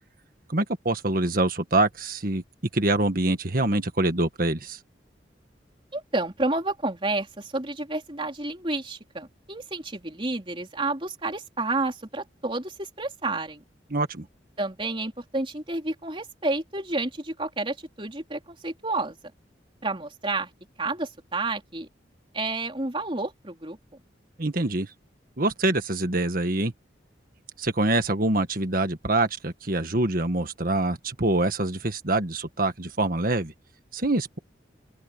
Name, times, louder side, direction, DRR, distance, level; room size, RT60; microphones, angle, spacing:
voice 1, 0.5-2.4 2.7-4.8 13.9-14.2 24.4-24.9 25.4-26.7 27.6-33.5 33.9-34.4, right 2 dB, 50° right, 1.7 m, -25 dB
voice 2, 5.9-13.6 14.6-19.2 19.8-20.5 20.8-21.9 22.3-23.8, right 2 dB, 30° right, 3.8 m, -30 dB
open air
head